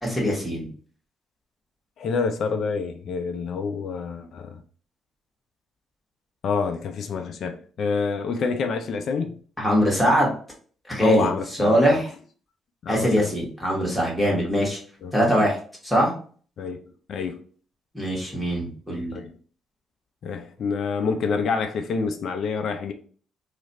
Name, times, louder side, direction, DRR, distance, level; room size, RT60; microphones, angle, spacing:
voice 1, 0.0-0.7 9.6-10.3 10.9-11.3 11.6-12.1 12.9-14.8 15.1-15.6 15.8-16.1 17.9-19.2, equal, 5° left, 1.6 m, -22 dB
voice 2, 2.0-4.6 6.4-9.4 11.0-11.8 12.8-13.3 14.3-14.4 15.0-15.1 16.6-16.8 17.1-17.4 19.1-19.3 20.2-22.9, left 5 dB, 65° left, 0.4 m, -27 dB
3.1 x 2.4 x 4.1 m
cardioid pair, 90°, 0 cm